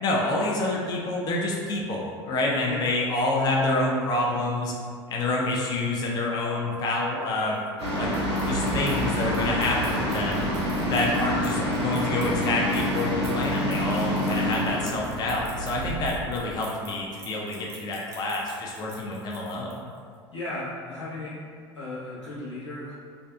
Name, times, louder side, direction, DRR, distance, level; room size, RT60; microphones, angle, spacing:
voice 1, 0.0-4.7 5.1-7.6 7.9-8.1 8.5-10.4 10.9-19.7, left 2 dB, 30° left, -2 dB, 0.4 m, -27 dB
sound 1, 7.4-20.0, right 2 dB, 20° right, 0.6 m, -48 dB
sound 2, 7.8-16.1, equal, 70° right, 0.6 m, -27 dB
voice 2, 20.3-21.4 21.7-22.9, left 2 dB, 85° left, -11 dB, 0.9 m, -35 dB
2.4 x 2.3 x 2.3 m, 2.1 s
figure-of-eight pair, 70°, 15 cm